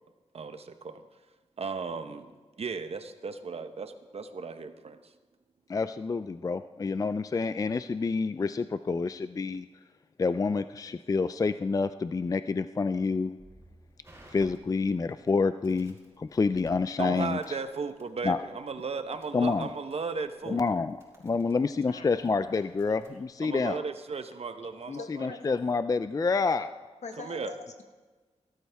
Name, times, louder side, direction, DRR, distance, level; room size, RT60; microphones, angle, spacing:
voice 1, 0.3-1.0 1.6-5.1 17.0-20.6 23.4-25.5 26.5-26.7 27.2-27.5, right 4 dB, 60° right, 9 dB, 1.0 m, -36 dB
voice 2, 5.7-9.7 10.2-13.4 14.3-17.6 18.2-18.4 19.3-19.7 20.5-21.0 21.2-23.8 24.9-26.7, left 4 dB, 30° left, 12 dB, 0.4 m, -28 dB
Crackle, 13.4-23.2, right 1 dB, 20° right, 4.4 m, -59 dB
voice 3, 24.9-25.5 27.0-27.8, left 4 dB, 85° left, 5 dB, 1.5 m, -43 dB
18.0 x 12.5 x 3.5 m, 1.3 s
wide cardioid pair, 95°, 12 cm